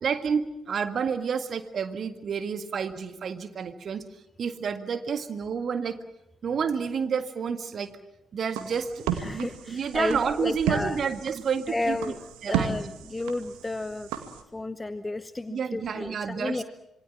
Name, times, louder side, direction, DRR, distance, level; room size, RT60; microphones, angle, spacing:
voice 1, 0.0-4.1 4.4-6.0 6.4-8.0 8.3-9.1 9.3-12.1 12.4-12.8 15.5-16.6, right 6 dB, 50° right, 9 dB, 1.8 m, -30 dB
sound 1, 8.5-14.4, right 9 dB, 70° right, 2.1 m, -34 dB
voice 2, 9.1-11.0 11.7-12.2 12.5-14.1 14.5-16.6, left 2 dB, 20° left, 13 dB, 1.0 m, -32 dB
26.5 x 22.5 x 7.3 m, 0.87 s
figure-of-eight pair, 40°, 0 cm